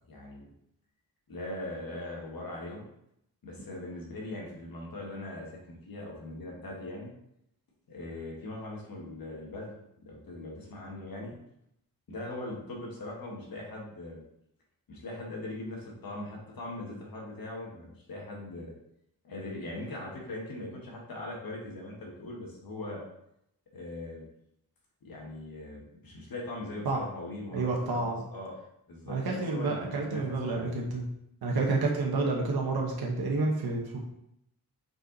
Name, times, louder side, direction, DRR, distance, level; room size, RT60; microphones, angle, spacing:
voice 1, 0.1-0.5 1.3-2.8 3.4-7.1 7.9-9.8 10.0-11.4 12.1-14.2 14.9-18.7 19.2-23.0 23.7-24.2 25.0-28.0 28.3-28.6 28.9-29.2 29.5-30.2 30.5-30.7, left 2 dB, 70° left, -2 dB, 1.6 m, -40 dB
voice 2, 27.5-28.2 29.1-31.0 31.4-34.0, right 3 dB, 75° right, -1 dB, 1.1 m, -29 dB
5.3 x 4.8 x 4.0 m, 0.78 s
wide cardioid pair, 145°, 37 cm